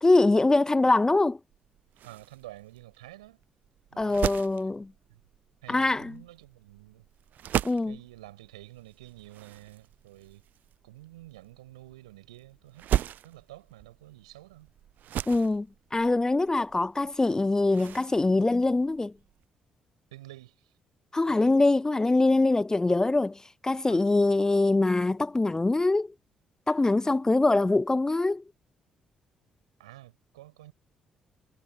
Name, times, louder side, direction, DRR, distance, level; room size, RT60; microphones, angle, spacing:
voice 1, 0.0-1.4 4.0-4.9 5.7-6.1 7.6-8.0 15.3-15.7 15.9-19.1 21.1-26.1 26.7-28.4, left 2 dB, 20° left, 0.4 m, -23 dB
sound 1, 1.5-19.4, right 11 dB, 65° right, 0.5 m, -38 dB
voice 2, 2.0-3.4 3.9-4.3 5.1-5.2 5.6-7.1 7.9-10.4 10.8-12.9 13.2-14.7 20.1-20.8 21.3-21.5 23.9-24.4 29.8-30.7, right 16 dB, 90° right, 7.3 m, -49 dB
hypercardioid pair, 45°, 3 cm